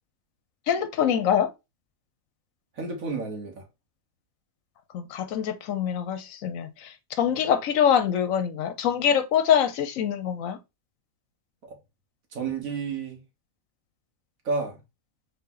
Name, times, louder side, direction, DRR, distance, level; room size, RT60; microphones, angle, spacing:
voice 1, 0.7-1.5 4.9-10.6, left 8 dB, 80° left, 1.0 m, -24 dB
voice 2, 2.8-3.6 11.6-11.8 12.3-13.2 14.4-14.8, right 4 dB, 85° right, 1.7 m, -31 dB
3.9 x 2.9 x 3.7 m
omnidirectional pair, 1.4 m